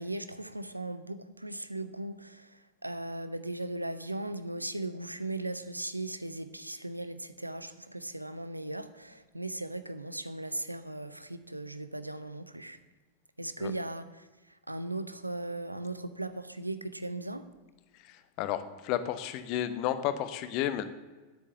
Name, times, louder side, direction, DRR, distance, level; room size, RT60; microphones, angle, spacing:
voice 1, 0.0-12.8 13.4-17.5, right 2 dB, 85° right, 12 dB, 0.7 m, -38 dB
voice 2, 18.1-20.8, left 11 dB, 40° left, 12 dB, 0.9 m, -32 dB
9.6 x 8.4 x 6.8 m, 1.2 s
figure-of-eight pair, 90°, 0 cm